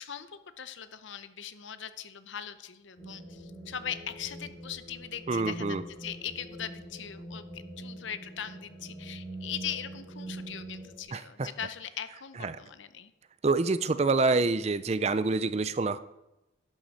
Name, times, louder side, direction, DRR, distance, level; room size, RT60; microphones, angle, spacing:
voice 1, 0.0-13.1, left 9 dB, 70° left, 12 dB, 0.7 m, -40 dB
sound 1, 3.0-11.0, right 1 dB, 25° left, 2.5 m, -44 dB
voice 2, 5.3-5.8 11.1-11.5 12.4-12.6 13.4-16.0, right 3 dB, 30° right, 14 dB, 0.4 m, -27 dB
11.5 x 9.1 x 4.2 m, 0.92 s
head